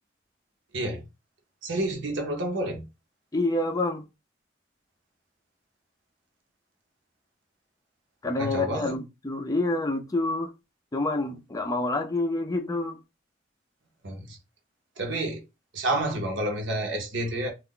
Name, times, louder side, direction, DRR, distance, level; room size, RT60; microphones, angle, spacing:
voice 1, 1.6-2.8 8.4-9.0 14.0-14.4 15.0-15.4 15.7-17.5, right 1 dB, 75° right, 0.9 m, -29 dB
voice 2, 3.3-4.0 8.2-10.5 10.9-13.0, left 2 dB, 20° left, 0.4 m, -27 dB
2.4 x 2.2 x 3.6 m
head